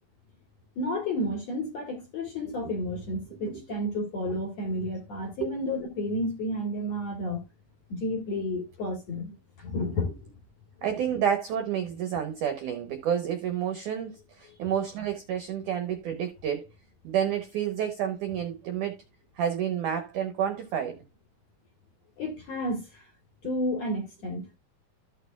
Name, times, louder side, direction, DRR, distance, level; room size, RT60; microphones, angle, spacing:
voice 1, 0.8-7.4 7.9-9.3 9.6-10.1 14.5-14.6 22.2-23.1 23.4-24.6, left 1 dB, 55° left, 2.0 m, -31 dB
voice 2, 10.8-16.6 17.0-18.9 19.4-21.0, right 9 dB, 80° right, 1.8 m, -29 dB
14.0 x 6.6 x 2.3 m
omnidirectional pair, 5.0 m